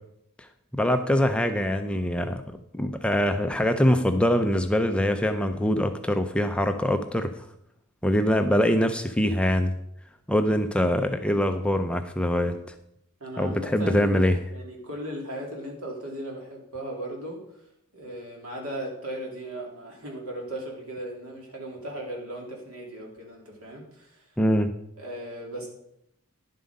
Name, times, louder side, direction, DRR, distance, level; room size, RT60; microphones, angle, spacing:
voice 1, 0.7-7.3 8.0-9.7 10.3-12.8 13.4-14.4 24.4-24.7, equal, 5° left, 7 dB, 0.5 m, -23 dB
voice 2, 13.2-14.2 14.5-17.4 17.9-24.3 25.0-25.7, right 1 dB, 70° right, 0 dB, 3.2 m, -37 dB
10.5 x 7.6 x 5.3 m, 0.75 s
head